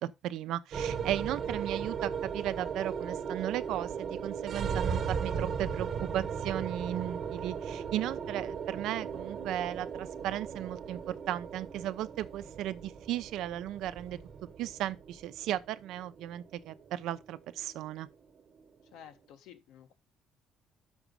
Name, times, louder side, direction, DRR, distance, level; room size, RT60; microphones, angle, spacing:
voice 1, 0.0-5.9 6.1-14.2 14.6-18.1, right 12 dB, 75° right, 0.7 m, -36 dB
sound 1, 0.7-19.1, right 6 dB, 45° right, 1.2 m, -37 dB
voice 2, 18.9-19.9, left 9 dB, 85° left, 1.4 m, -52 dB
6.1 x 6.1 x 5.4 m
cardioid pair, 155°, 0 cm